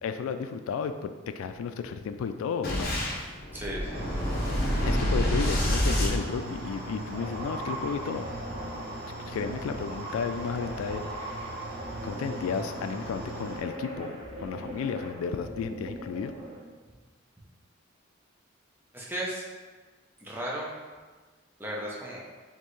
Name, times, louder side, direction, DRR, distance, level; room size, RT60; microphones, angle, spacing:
voice 1, 0.0-2.9 4.8-8.3 9.3-11.3 12.0-16.3, left 6 dB, 85° left, 9 dB, 0.3 m, -33 dB
Boom, 2.6-7.0, equal, 50° left, 0.8 m, -27 dB
voice 2, 3.5-4.3 18.9-19.4 20.2-20.8 21.6-22.2, right 1 dB, 10° right, -4 dB, 0.6 m, -35 dB
sound 1, 3.9-13.6, right 1 dB, 50° right, 0.7 m, -40 dB
sound 2, 7.1-16.6, right 1 dB, 30° right, 1.0 m, -40 dB
4.4 x 3.1 x 3.1 m, 1.3 s
head